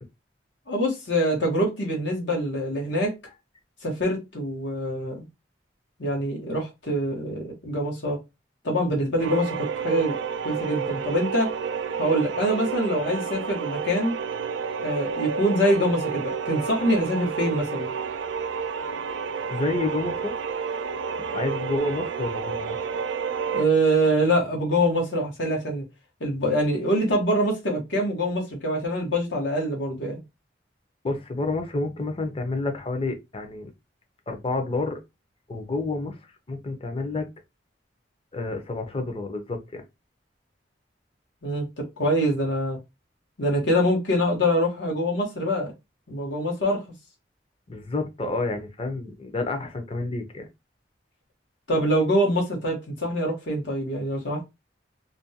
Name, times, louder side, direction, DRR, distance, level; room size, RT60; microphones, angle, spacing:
voice 1, 0.7-3.1 3.8-5.2 6.0-8.2 8.6-10.2 10.4-11.5 12.0-14.1 14.8-17.9 23.5-25.8 26.2-30.2 41.4-42.8 43.4-45.7 46.1-46.8 51.7-54.5, equal, 85° left, 1.1 m, -24 dB
sound 1, 9.2-23.7, right 6 dB, 85° right, 0.3 m, -30 dB
voice 2, 19.5-20.3 21.2-22.8 31.0-33.7 34.3-35.0 35.5-36.2 36.5-37.3 38.3-39.8 47.7-50.5, left 2 dB, 30° left, 0.5 m, -29 dB
2.5 x 2.2 x 2.7 m
head